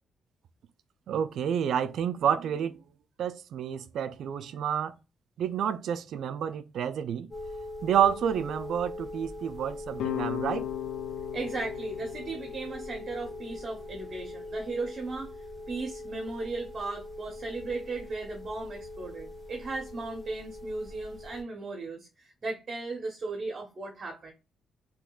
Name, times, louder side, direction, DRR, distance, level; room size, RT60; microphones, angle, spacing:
voice 1, 1.1-2.8 3.2-5.0 5.4-7.3 7.8-10.7, right 8 dB, 70° right, 0.4 m, -29 dB
sound 1, 7.3-21.4, left 1 dB, 35° left, 2.0 m, -42 dB
sound 2, 10.0-15.1, left 14 dB, 85° left, 0.4 m, -38 dB
voice 2, 11.3-15.3 15.7-24.3, right 3 dB, 40° right, 0.9 m, -36 dB
3.6 x 2.9 x 2.3 m
cardioid pair, 90°, 0 cm